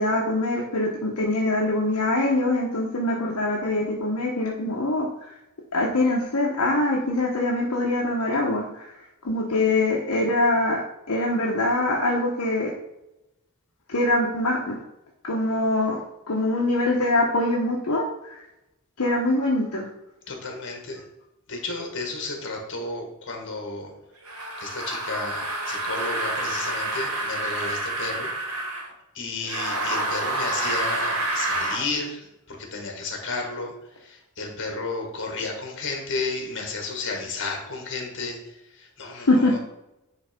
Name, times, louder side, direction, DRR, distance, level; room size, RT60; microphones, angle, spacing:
voice 1, 0.0-5.3 5.7-8.9 9.2-10.8 11.1-12.7 13.9-14.8 15.2-16.0 16.3-18.4 19.0-19.9 39.1-39.6, left 2 dB, 75° left, -2 dB, 1.1 m, -23 dB
voice 2, 20.3-21.0 21.5-23.9 24.6-28.3 29.1-39.6, left 3 dB, 60° left, 2 dB, 1.8 m, -32 dB
sound 1, 24.2-28.9 29.4-31.9, right 2 dB, 80° right, 1.9 m, -28 dB
10.0 x 3.4 x 5.1 m, 0.91 s
head